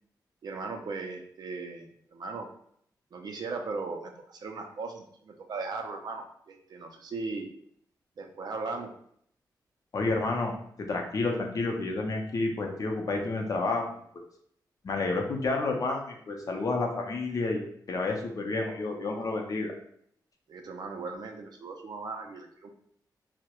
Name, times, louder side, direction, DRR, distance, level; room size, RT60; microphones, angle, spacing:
voice 1, 0.4-2.5 3.1-7.5 8.2-8.9 20.5-22.7, right 3 dB, 65° right, 4 dB, 0.4 m, -38 dB
voice 2, 9.9-13.9 14.8-19.7, left 3 dB, 50° left, 2 dB, 0.5 m, -30 dB
2.2 x 2.0 x 2.8 m, 0.66 s
wide cardioid pair, 100°, 8 cm